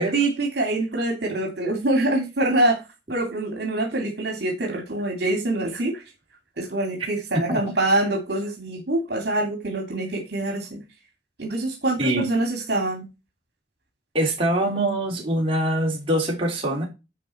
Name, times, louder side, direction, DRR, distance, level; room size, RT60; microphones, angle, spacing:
voice 1, 0.0-2.8 3.1-6.0 6.6-10.8 11.4-13.1, right 2 dB, 60° right, 2.7 m, -25 dB
voice 2, 14.1-16.9, right 1 dB, 30° right, 3.5 m, -23 dB
10.5 x 5.0 x 4.4 m
head